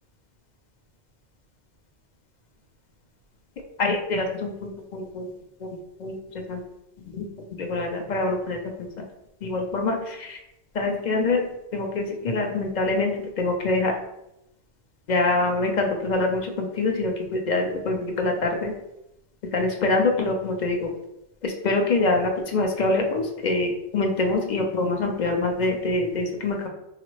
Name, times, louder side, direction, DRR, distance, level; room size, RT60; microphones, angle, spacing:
voice 1, 3.8-5.3 5.6-6.2 6.5-6.6 7.1-7.2 7.6-8.6 9.4-10.4 10.8-11.4 11.7-13.1 13.4-13.9 15.1-18.7 19.5-20.9 21.4-26.7, left 2 dB, 50° left, 2 dB, 0.6 m, -25 dB
3.9 x 2.4 x 3.0 m, 0.86 s
omnidirectional pair, 1.1 m